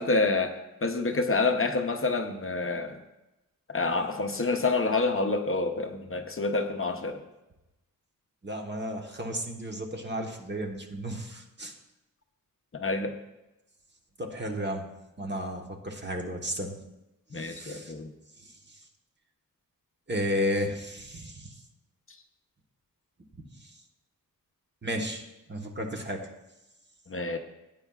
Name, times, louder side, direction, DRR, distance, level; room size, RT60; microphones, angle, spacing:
voice 1, 0.0-3.0 3.7-7.2 12.7-13.1 17.3-18.1 27.1-27.4, left 3 dB, 40° left, 5 dB, 0.8 m, -28 dB
voice 2, 8.4-11.7 14.2-14.9 15.2-16.8 17.3-17.9 18.4-18.5 20.1-21.6 24.8-25.2 25.5-26.3, equal, 30° right, 2 dB, 1.2 m, -33 dB
17.5 x 9.1 x 2.4 m, 0.96 s
wide cardioid pair, 160°, 35 cm